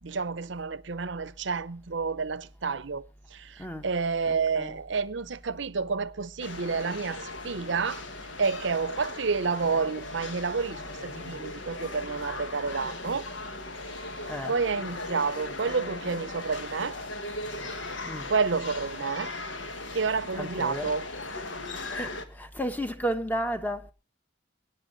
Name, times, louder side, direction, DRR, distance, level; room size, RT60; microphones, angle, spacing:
voice 1, 0.0-3.0 3.3-8.0 8.4-13.3 14.1-17.0 17.8-18.0 18.3-19.3 19.9-21.1, right 5 dB, 65° right, 0.7 m, -30 dB
voice 2, 4.3-4.8 14.3-14.6 18.1-18.3 20.4-20.9 21.9-23.9, equal, 10° left, 1.1 m, -33 dB
sound 1, 6.4-22.2, left 2 dB, 70° left, 1.6 m, -38 dB
23.5 x 9.9 x 4.0 m
head